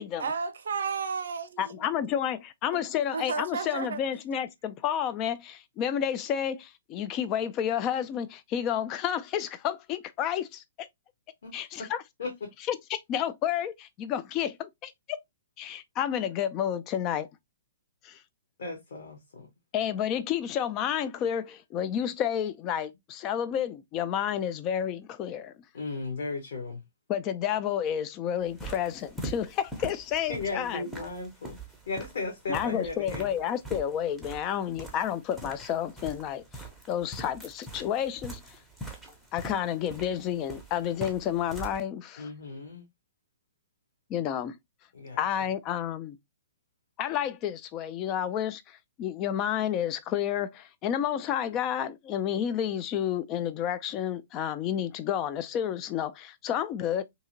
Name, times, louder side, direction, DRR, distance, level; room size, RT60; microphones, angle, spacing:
voice 1, 0.2-1.8 2.7-4.0, right 5 dB, 60° right, 0.5 m, -33 dB
voice 2, 1.6-10.9 11.5-12.0 12.7-14.9 15.6-17.3 18.0-18.2 19.7-25.5 27.1-30.8 32.5-38.4 39.3-42.3 44.1-44.6 45.2-46.2 47.0-57.0, left 9 dB, 25° left, 0.3 m, -30 dB
voice 3, 12.2-12.5 18.6-19.5 25.7-26.8 30.3-31.6 31.9-33.3 42.2-42.9 44.9-45.2, left 3 dB, 55° left, 0.9 m, -36 dB
sound 1, 28.4-41.8, right 1 dB, ahead, 0.7 m, -43 dB
2.8 x 2.7 x 2.5 m
figure-of-eight pair, 115°, 0 cm